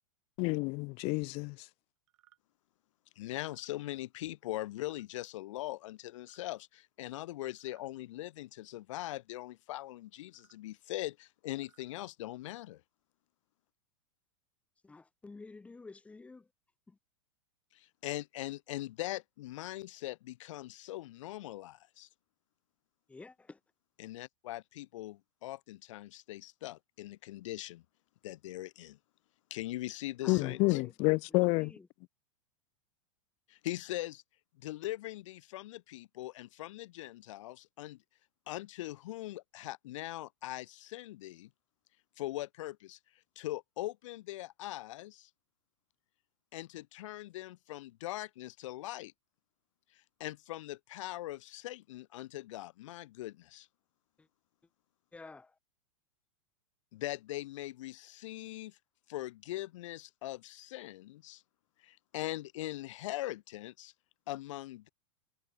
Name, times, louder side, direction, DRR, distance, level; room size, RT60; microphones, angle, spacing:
voice 1, 0.4-1.6 30.3-31.7, left 28 dB, 35° left, 0.5 m, -29 dB
sound 1, 2.1-2.4 3.3-3.7 4.8-5.1 6.1-6.5 7.5-7.9 8.9-9.2 10.2-10.6 11.4-11.9, right 16 dB, 65° right, 7.0 m, -69 dB
voice 2, 3.2-12.8 17.7-22.1 24.0-27.8 28.2-29.0 29.5-30.8 33.5-34.2 34.6-38.0 38.5-41.5 42.2-43.0 43.4-45.3 46.5-49.1 49.9-53.7 56.9-58.8 59.1-61.4 61.8-63.9 64.3-64.9, left 16 dB, 65° left, 1.1 m, -41 dB
voice 3, 14.9-16.4 23.1-23.6 30.2-30.9 55.1-55.5, left 3 dB, 5° left, 0.9 m, -49 dB
supercardioid pair, 145°, 17 cm